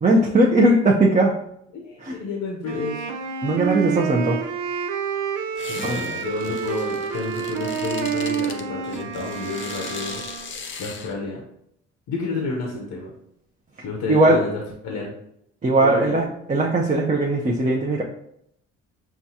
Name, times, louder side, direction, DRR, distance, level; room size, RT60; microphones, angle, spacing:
voice 1, 0.0-1.4 2.0-2.2 3.4-4.4 5.8-6.0 14.1-14.4 15.6-18.0, right 2 dB, 25° right, -1 dB, 0.5 m, -19 dB
voice 2, 1.7-3.0 5.7-10.2 10.8-11.4 12.1-13.1 13.8-15.1 15.8-16.2, left 4 dB, 75° left, 0 dB, 0.8 m, -30 dB
Wind instrument woodwind instrument, 2.6-10.6, right 7 dB, 85° right, 0.5 m, -29 dB
sound 1, 5.6-11.1, left 4 dB, 40° left, 0.6 m, -38 dB
5.8 x 2.3 x 2.7 m, 0.74 s
cardioid pair, 90°, 30 cm